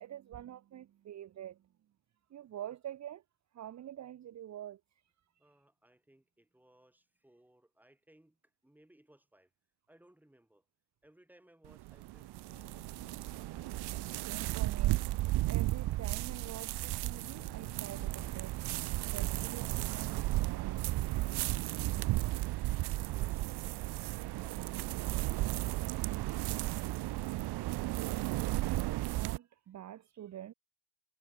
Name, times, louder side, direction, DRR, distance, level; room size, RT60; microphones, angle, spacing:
voice 1, 0.0-1.6 2.3-3.2 3.5-4.8 14.2-15.0 15.5-18.6 19.1-20.9 27.7-28.3 28.6-30.5, right 11 dB, 45° right, 1.1 m, -47 dB
voice 2, 5.4-9.5 9.9-10.6 11.0-12.8 23.1-23.9 24.4-24.6, right 1 dB, 5° right, 7.5 m, -64 dB
sound 1, 11.6-29.4, right 18 dB, 75° right, 1.0 m, -34 dB
sound 2, 12.5-18.4, left 13 dB, 70° left, 4.8 m, -59 dB
cardioid pair, 145°, 39 cm